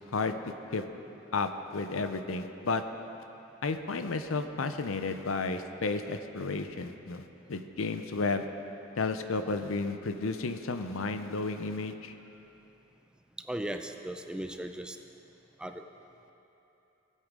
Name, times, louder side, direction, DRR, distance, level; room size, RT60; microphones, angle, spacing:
voice 1, 1.3-2.8 3.6-8.5 9.0-12.1, left 3 dB, 90° left, 8 dB, 0.6 m, -32 dB
voice 2, 13.5-15.0 15.6-15.8, right 1 dB, 5° right, 6 dB, 0.4 m, -37 dB
19.0 x 8.1 x 3.7 m, 3.0 s
head